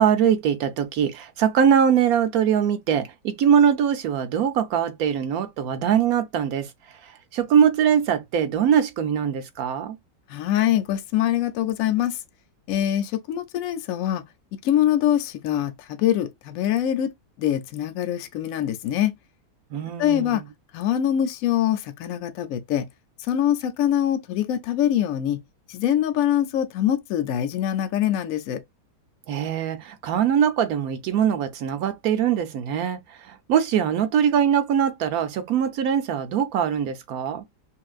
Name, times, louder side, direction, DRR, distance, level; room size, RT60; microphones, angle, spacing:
voice 1, 0.0-6.7 7.3-10.0 19.7-20.5 29.3-33.0 33.3-37.4, right 8 dB, 65° right, 1.1 m, -22 dB
voice 2, 10.3-12.2 12.7-14.2 14.6-17.1 17.4-19.1 20.0-20.4 20.7-22.9 23.3-25.4 25.7-28.6, left 11 dB, 70° left, 0.8 m, -23 dB
5.5 x 2.5 x 2.4 m
omnidirectional pair, 1.8 m